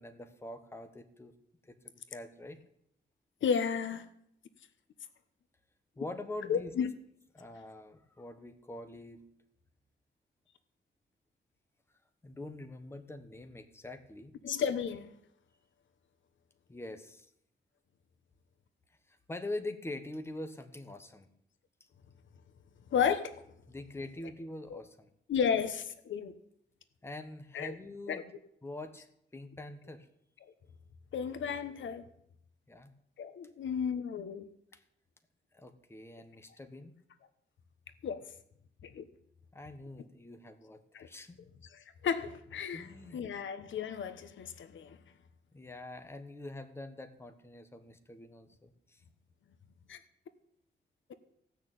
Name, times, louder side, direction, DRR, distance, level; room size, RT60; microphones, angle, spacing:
voice 1, 0.0-1.3 1.6-2.6 6.0-6.7 7.3-9.2 12.2-14.3 16.7-17.3 19.1-21.3 23.7-25.1 27.0-28.2 28.6-30.1 32.7-32.9 34.7-34.8 35.5-36.9 39.5-41.4 42.7-43.4 45.5-49.0, left 2 dB, 10° left, 1.2 m, -44 dB
voice 2, 3.4-4.0 6.5-6.9 14.4-15.1 22.9-23.3 24.7-24.8 25.3-26.3 27.5-27.7 28.1-28.2 31.1-32.0 33.2-34.5 38.0-38.2 38.8-39.1 40.9-41.1 41.7-45.0 49.9-50.0, left 7 dB, 75° left, 1.1 m, -33 dB
16.5 x 6.4 x 9.0 m
wide cardioid pair, 160°, 20 cm